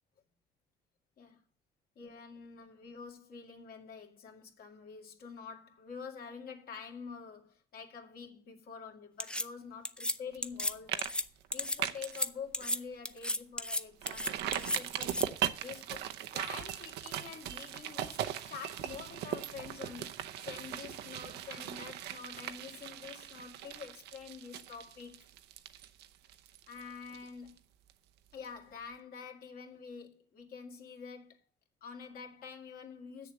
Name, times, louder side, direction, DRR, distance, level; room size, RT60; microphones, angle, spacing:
voice 1, 2.0-11.2 11.5-16.1 16.3-25.2 26.7-27.5 28.3-31.5 31.8-33.3, left 6 dB, 60° left, 2.1 m, -47 dB
sound 1, 9.2-9.4 9.8-10.1 10.4-10.7 11.0-11.2 11.5-11.8 12.0-12.3 12.5-12.8 13.0-13.8 14.1-15.2, left 1 dB, 5° left, 0.5 m, -33 dB
sound 2, 10.3-10.6 10.9-11.1 11.4-12.2 12.6-12.7 13.1-13.2 14.0-27.6 27.9-28.0, right 11 dB, 80° right, 0.7 m, -39 dB
7.7 x 6.9 x 7.3 m
cardioid pair, 110°, 17 cm